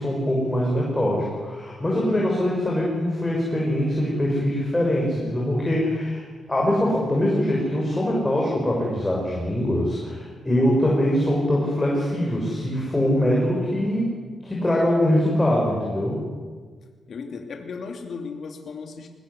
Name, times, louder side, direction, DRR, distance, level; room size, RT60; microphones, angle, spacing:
voice 1, 0.0-14.1 14.4-16.2, left 1 dB, 15° left, -3 dB, 6.4 m, -23 dB
voice 2, 17.1-19.1, left 5 dB, 60° left, 4 dB, 2.9 m, -35 dB
21.0 x 20.5 x 8.4 m, 1.5 s
cardioid pair, 110°, 0 cm